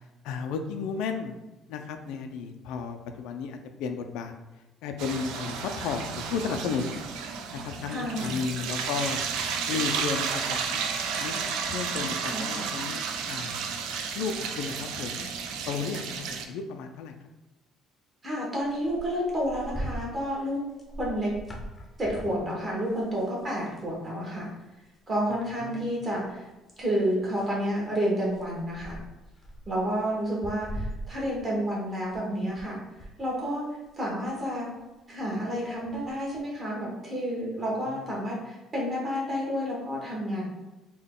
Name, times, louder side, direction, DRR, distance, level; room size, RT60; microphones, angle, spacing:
voice 1, 0.2-1.4 1.7-4.3 4.8-7.0 7.5-9.2 9.7-10.8 11.2-13.6 14.1-15.3 15.7-17.1 25.6-25.9 37.9-38.1, left 5 dB, 85° left, 6 dB, 0.3 m, -33 dB
sound 1, 5.0-16.4, right 6 dB, 85° right, 0.3 m, -32 dB
voice 2, 7.9-8.3 11.9-12.0 12.3-12.7 18.2-20.6 21.0-21.3 22.0-24.4 25.1-26.5 26.8-29.0 29.7-32.8 33.2-33.6 34.0-34.7 35.1-40.4, equal, 25° right, -4 dB, 1.2 m, -30 dB
sound 2, 18.6-23.9 24.3-24.5 24.8-25.6 26.1-32.7 33.0-36.4, right 1 dB, 15° left, 0.6 m, -42 dB
3.6 x 2.2 x 3.6 m, 1.1 s
cardioid pair, 140°, 0 cm